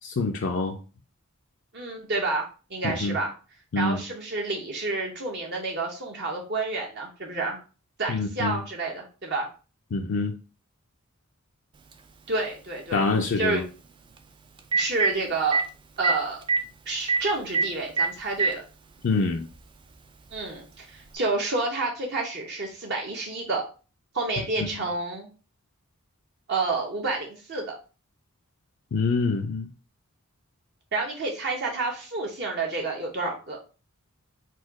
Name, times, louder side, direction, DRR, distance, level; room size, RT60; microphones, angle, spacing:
voice 1, 0.2-0.8 2.8-3.2 3.7-4.0 8.1-8.6 9.9-10.3 12.9-13.6 19.0-19.5 24.6-24.7 28.9-29.7, left 3 dB, 55° left, 3 dB, 0.4 m, -25 dB
voice 2, 1.7-3.3 3.8-7.6 8.0-9.5 12.3-13.0 13.4-13.6 14.7-15.6 16.0-16.4 16.9-18.6 20.3-23.7 24.1-25.3 26.5-27.7 30.9-33.6, right 3 dB, 50° right, -1 dB, 0.8 m, -29 dB
Telephone, 11.9-12.0 14.2-14.3 14.6-15.1 15.5-15.6 16.0-16.1 16.4-16.6 17.1-17.2 17.5-17.7 18.0-18.5 19.5-19.6 21.1-21.2, right 4 dB, 20° right, 0.3 m, -22 dB
4.2 x 2.3 x 4.6 m, 0.34 s
head